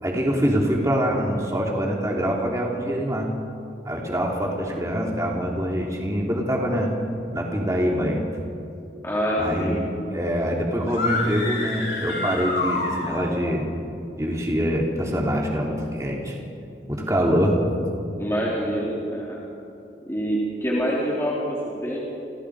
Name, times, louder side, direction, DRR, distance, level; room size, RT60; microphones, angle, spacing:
voice 1, 0.0-3.3 3.8-6.9 7.3-8.2 9.4-9.9 10.1-13.7 14.2-16.4 16.9-17.6, equal, 20° right, -1 dB, 3.4 m, -24 dB
voice 2, 9.0-9.8 18.2-19.4 20.1-22.0, equal, 15° left, -6 dB, 4.1 m, -26 dB
sound 1, 10.8-13.4, left 2 dB, 80° left, 7.9 m, -28 dB
29.5 x 28.5 x 5.0 m, 2.6 s
head